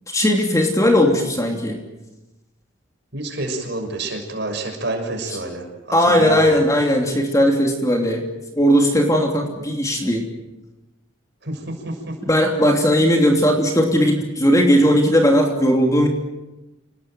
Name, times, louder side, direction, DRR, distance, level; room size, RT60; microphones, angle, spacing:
voice 1, 0.1-1.8 5.9-8.2 8.6-10.2 12.3-16.1, equal, 15° left, 1 dB, 3.1 m, -17 dB
voice 2, 3.1-6.6 11.4-12.0, right 2 dB, 55° right, 3 dB, 6.4 m, -28 dB
28.0 x 19.5 x 9.2 m, 1.0 s
head